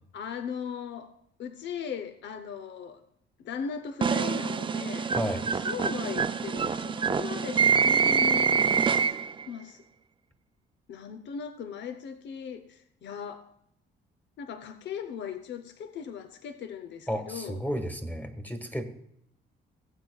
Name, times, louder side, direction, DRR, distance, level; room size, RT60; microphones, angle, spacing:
voice 1, 0.1-3.0 3.4-5.2 5.5-8.7 9.0-9.2 9.5-9.8 10.9-13.5 14.4-17.6, left 7 dB, 65° left, 0.7 m, -38 dB
sound 1, 4.0-9.4, right 6 dB, 25° right, 0.4 m, -25 dB
voice 2, 17.1-18.8, equal, 10° left, 1.5 m, -32 dB
18.0 x 8.0 x 2.3 m
cardioid pair, 90°, 20 cm